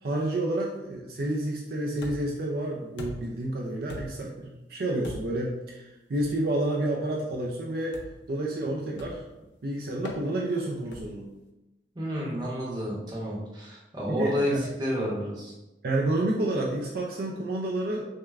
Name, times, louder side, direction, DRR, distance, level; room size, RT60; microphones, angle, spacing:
voice 1, 0.0-8.0 8.3-9.2 9.6-11.3 14.1-14.6 15.8-18.1, right 1 dB, 60° right, -2 dB, 0.5 m, -29 dB
sound 1, 2.0-2.4 3.0-3.4 3.9-4.3 5.0-5.5 6.2-6.4 7.9-8.3 9.0-9.3 10.0-10.2 10.9-11.3, left 1 dB, 85° left, 0.6 m, -40 dB
voice 2, 11.9-14.5 14.8-15.5, equal, 25° right, -4 dB, 0.9 m, -30 dB
6.2 x 2.2 x 2.4 m, 0.99 s
head